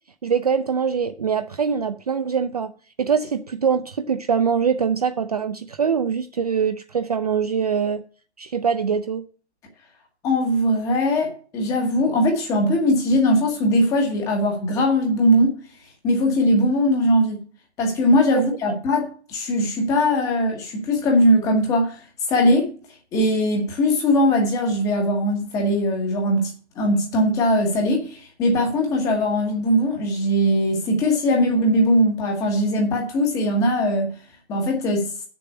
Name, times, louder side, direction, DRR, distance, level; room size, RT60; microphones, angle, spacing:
voice 1, 0.2-2.7 3.0-8.0 8.4-9.2 18.3-18.4, right 6 dB, 35° right, 0.5 m, -23 dB
voice 2, 10.2-15.6 16.0-17.4 17.8-22.0 22.3-22.7 23.1-26.5 26.8-34.1 34.5-35.1, equal, 10° left, 1.3 m, -20 dB
7.7 x 6.9 x 8.3 m
hypercardioid pair, 170°, 33 cm